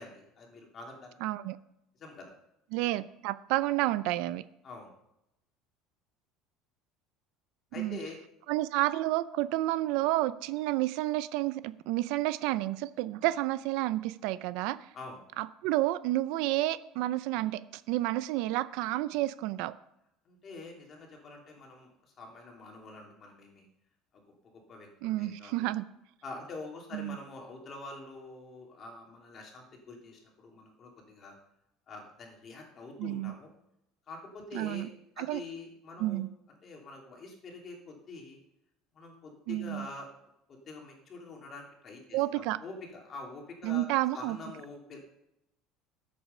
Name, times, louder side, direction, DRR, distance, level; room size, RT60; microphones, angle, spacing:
voice 1, 0.0-1.2 2.0-2.3 4.6-4.9 7.7-8.2 14.9-15.2 20.2-21.9 22.2-23.7 24.5-25.7 26.2-31.4 31.9-33.5 34.1-34.9 35.2-36.2 36.6-38.4 38.9-40.1 40.5-43.9 44.1-45.0, left 3 dB, 30° left, 0 dB, 2.8 m, -46 dB
voice 2, 1.2-1.6 2.7-4.4 7.8-8.0 8.5-14.8 15.4-19.7 25.0-25.8 26.9-27.2 33.0-33.3 34.5-34.9 35.2-35.4 36.0-36.3 39.5-39.9 42.1-42.6 43.6-44.4, right 16 dB, 65° right, 15 dB, 0.5 m, -30 dB
13.5 x 7.9 x 5.5 m, 0.82 s
cardioid pair, 170°, 0 cm